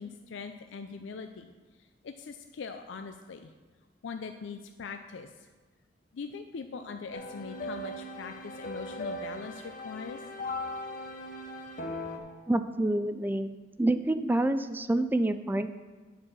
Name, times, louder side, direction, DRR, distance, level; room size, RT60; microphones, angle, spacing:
voice 1, 0.0-1.5 1.8-3.5 4.0-5.5 6.1-10.2, left 5 dB, 80° left, 6 dB, 0.4 m, -41 dB
sound 1, 7.1-12.2, left 1 dB, 45° left, 0.9 m, -38 dB
voice 2, 12.5-13.5 13.8-15.7, right 1 dB, 10° right, 10 dB, 0.3 m, -27 dB
10.5 x 4.6 x 6.1 m, 1.3 s
head